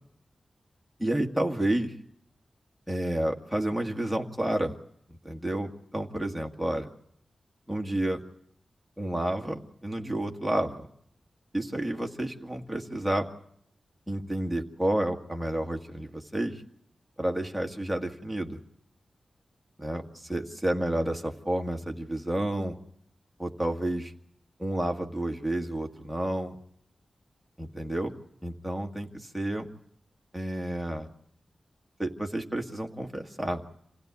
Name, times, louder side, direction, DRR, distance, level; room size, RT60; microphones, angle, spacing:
voice 1, 1.0-1.9 2.9-4.7 5.2-6.9 7.7-8.2 9.0-10.9 11.5-13.3 14.1-16.6 17.2-18.6 19.8-22.8 23.4-24.1 24.6-26.6 27.6-29.7 30.3-31.1 32.0-33.6, right 1 dB, ahead, 1 dB, 1.7 m, -30 dB
27.0 x 16.0 x 9.6 m, 0.72 s
wide cardioid pair, 160°, 0 cm